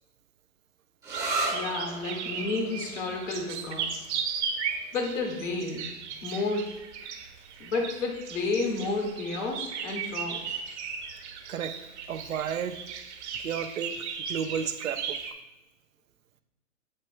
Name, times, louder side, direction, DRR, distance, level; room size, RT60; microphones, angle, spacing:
sound 1, 1.0-8.4, right 2 dB, 10° right, 1.3 m, -38 dB
sound 2, 1.1-15.3, right 6 dB, 55° right, 1.1 m, -36 dB
voice 1, 1.5-4.1 4.9-5.9 6.2-6.7 7.6-10.6, left 3 dB, 65° left, 1 dB, 2.0 m, -31 dB
voice 2, 12.1-12.8 13.4-15.2, right 8 dB, 80° right, 8 dB, 0.7 m, -33 dB
7.5 x 6.5 x 2.3 m, 0.96 s
hypercardioid pair, 125°, 40 cm